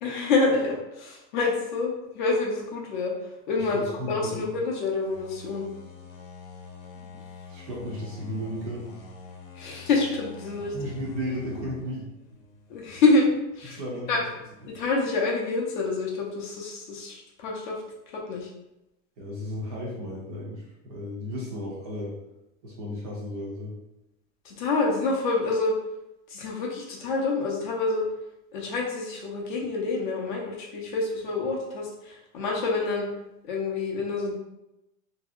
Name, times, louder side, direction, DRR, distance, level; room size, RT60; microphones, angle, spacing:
voice 1, 0.0-5.7 9.6-10.8 12.7-13.3 13.6-13.8 14.1-14.2 14.7-17.8 18.1-18.5 24.4-25.7 26.3-28.1 28.5-33.1 33.4-34.3, left 3 dB, 40° left, -2 dB, 0.4 m, -27 dB
voice 2, 3.6-4.5 6.9-8.9 10.7-12.1 13.7-14.2 14.6-14.7 19.2-22.2 22.6-23.7, equal, 30° right, -4 dB, 0.4 m, -35 dB
sound 1, 5.1-14.8, left 5 dB, 75° left, 0.7 m, -47 dB
2.8 x 2.7 x 2.3 m, 0.91 s
supercardioid pair, 170°, 40 cm